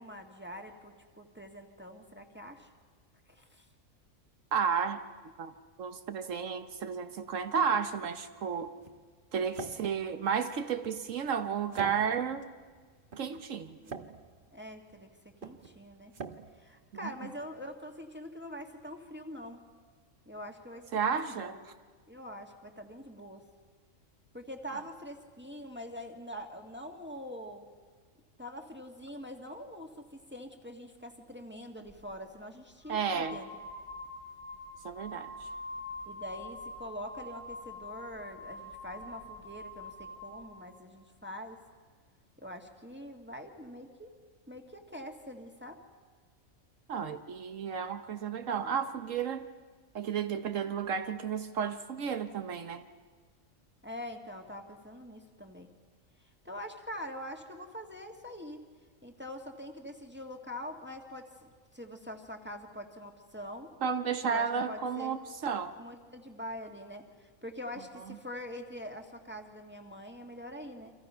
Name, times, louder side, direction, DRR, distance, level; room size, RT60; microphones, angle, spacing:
voice 1, 0.0-2.7 3.3-3.7 13.8-14.0 14.5-15.1 15.4-16.1 16.6-19.6 20.3-21.6 22.1-23.4 24.3-27.7 28.4-33.5 36.1-41.6 42.4-44.1 44.5-45.8 53.8-55.7 56.5-58.6 59.0-63.7 64.2-65.2 65.8-70.9, equal, 10° right, 3 dB, 1.8 m, -44 dB
voice 2, 4.5-5.0 5.4-5.5 5.8-8.8 9.3-12.4 13.2-13.8 16.9-17.1 20.9-21.6 24.7-24.8 32.9-33.4 34.8-35.5 46.9-49.5 49.9-52.8 63.8-65.7, right 6 dB, 80° right, 8 dB, 1.3 m, -32 dB
sound 1, 7.9-17.7, right 5 dB, 45° right, 1.2 m, -48 dB
sound 2, 31.9-32.1 32.8-40.6, left 2 dB, 85° left, 4.0 m, -45 dB
29.5 x 25.5 x 5.6 m, 1.5 s
omnidirectional pair, 1.3 m